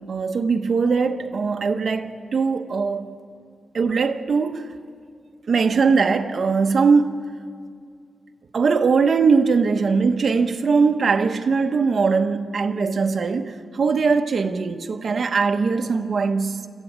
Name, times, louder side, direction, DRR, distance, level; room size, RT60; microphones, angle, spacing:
voice 1, 0.1-3.2 3.7-4.7 5.5-7.2 8.5-16.7, right 5 dB, 50° right, 1.0 m, -21 dB
26.0 x 14.0 x 8.7 m
wide cardioid pair, 130°, 0 cm